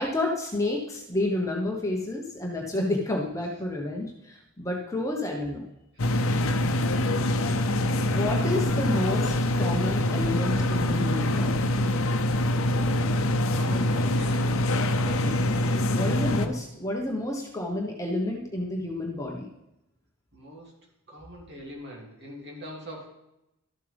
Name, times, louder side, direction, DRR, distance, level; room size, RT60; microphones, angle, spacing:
voice 1, 0.0-5.6 8.1-11.7 15.2-15.4 15.9-19.5, left 1 dB, 15° left, -1 dB, 1.1 m, -30 dB
voice 2, 5.9-7.5 13.5-14.6 15.0-15.3 20.3-20.7 21.1-23.1, equal, 50° right, -2 dB, 2.8 m, -43 dB
sound 1, 6.0-16.5, left 1 dB, 80° left, 0.7 m, -25 dB
13.0 x 7.6 x 3.5 m, 0.88 s
head